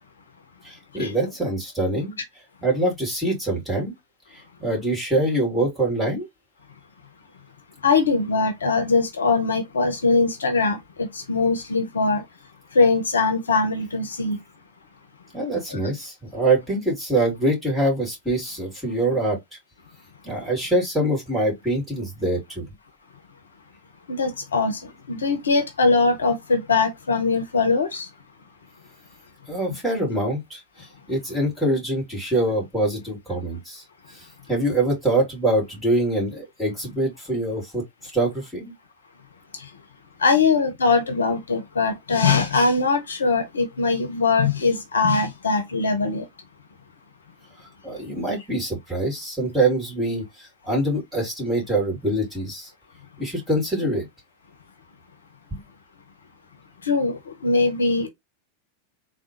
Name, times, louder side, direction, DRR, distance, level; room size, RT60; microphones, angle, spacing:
voice 1, 0.6-2.2 2.6-3.9 4.3-6.3 15.3-19.4 20.2-22.6 29.5-30.6 31.1-33.8 34.5-37.8 38.1-38.7 47.8-52.7 53.2-54.1 55.5-55.6, right 1 dB, 5° right, 2.2 m, -24 dB
voice 2, 7.8-12.2 12.7-14.4 15.7-15.8 24.1-24.8 25.1-28.1 40.2-46.2 56.8-58.1, left 4 dB, 70° left, 0.7 m, -21 dB
3.5 x 2.3 x 2.9 m
figure-of-eight pair, 90°, 0 cm